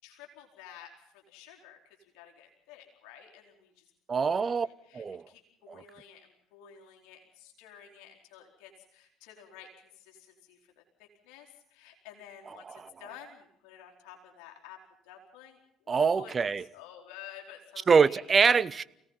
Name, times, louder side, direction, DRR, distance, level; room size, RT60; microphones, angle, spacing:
voice 1, 0.0-0.9 1.3-3.8 4.2-14.8 15.0-16.3 16.7-18.2, left 9 dB, 75° left, 4.5 m, -52 dB
voice 2, 4.1-4.7 4.9-5.2 5.7-5.8 12.6-12.9 15.9-16.6 17.9-18.8, right 5 dB, 35° right, 0.9 m, -24 dB
29.5 x 18.5 x 5.7 m
hypercardioid pair, 65°, 0 cm